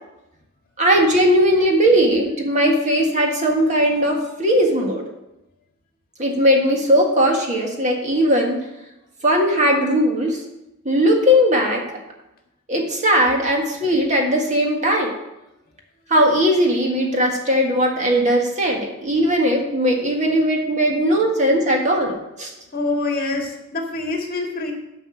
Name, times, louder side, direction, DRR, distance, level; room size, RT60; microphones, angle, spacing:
voice 1, 0.8-5.1 6.2-8.6 9.2-10.4 10.9-11.9 12.7-15.1 16.1-22.5, equal, 35° right, 1 dB, 1.7 m, -18 dB
voice 2, 22.7-24.7, left 2 dB, 45° left, 1 dB, 1.9 m, -25 dB
10.0 x 5.3 x 7.7 m, 0.92 s
head